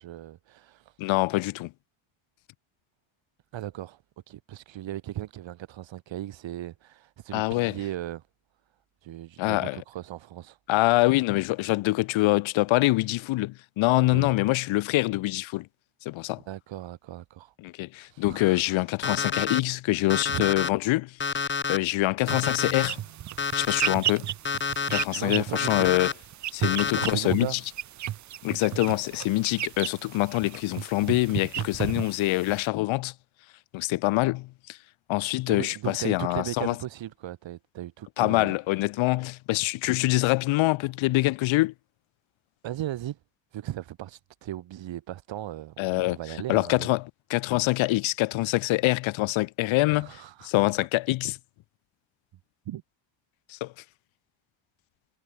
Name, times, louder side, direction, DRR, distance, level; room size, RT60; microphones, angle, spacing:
voice 1, 0.0-1.0 3.5-4.0 4.3-8.2 9.0-10.6 14.1-14.3 16.5-17.5 18.0-18.8 20.3-20.5 25.2-25.9 27.0-27.6 35.5-38.5 42.6-43.2 43.5-46.9 49.9-50.7 52.6-52.8, right 13 dB, 70° right, 4.7 m, -37 dB
voice 2, 1.0-1.7 7.3-7.7 9.4-9.8 10.7-15.7 16.0-16.4 17.6-23.0 23.5-24.3 24.9-26.1 26.5-27.6 28.4-33.1 33.7-34.8 35.1-36.7 38.2-41.7 45.8-46.2 46.5-51.4 53.5-53.7, left 19 dB, 80° left, 0.8 m, -25 dB
Alarm, 19.0-19.6 20.1-20.7 21.2-21.8 22.3-22.9 23.4-24.0 24.5-25.0 25.6-26.1 26.6-27.1, left 5 dB, 25° left, 1.4 m, -28 dB
sound 1, 22.3-32.7, right 12 dB, 40° right, 0.5 m, -34 dB
cardioid pair, 120°, 46 cm